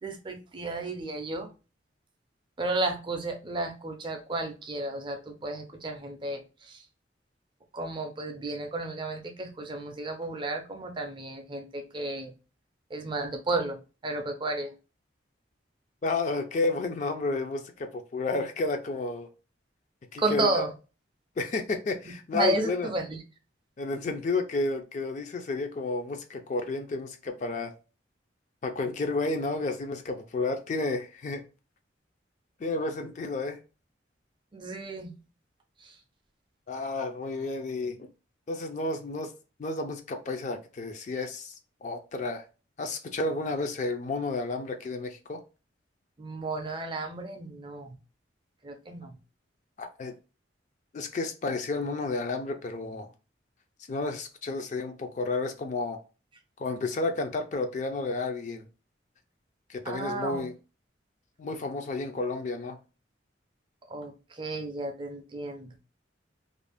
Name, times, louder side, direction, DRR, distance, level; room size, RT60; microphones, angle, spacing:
voice 1, 0.0-1.5 2.6-6.8 7.7-12.3 12.9-14.7 20.2-20.7 22.3-23.2 34.5-35.1 35.8-36.0 46.2-48.0 48.6-49.2 59.8-60.5 63.9-65.7, right 2 dB, 25° right, 0.4 m, -33 dB
voice 2, 16.0-19.3 20.1-20.6 21.4-22.9 23.8-27.7 28.6-31.4 32.6-33.6 36.7-38.0 38.5-39.3 39.6-42.4 42.8-45.4 49.8-50.1 50.9-53.1 53.9-56.0 56.6-58.7 59.7-60.5 61.4-62.8, left 3 dB, 40° left, 0.3 m, -31 dB
2.5 x 2.0 x 3.3 m
head